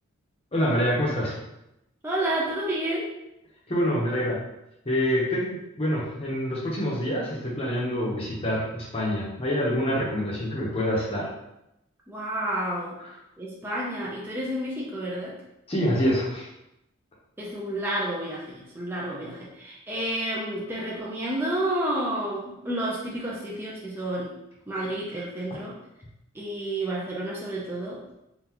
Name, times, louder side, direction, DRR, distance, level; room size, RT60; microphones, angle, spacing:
voice 1, 0.5-1.4 3.7-4.4 4.8-11.3 15.7-16.5, equal, 30° left, -5 dB, 0.8 m, -26 dB
voice 2, 2.0-3.2 12.1-13.0 13.4-15.4 17.4-24.3 24.7-25.8 26.3-28.0, right 1 dB, 10° right, -5 dB, 0.4 m, -30 dB
3.7 x 2.4 x 2.9 m, 0.86 s
head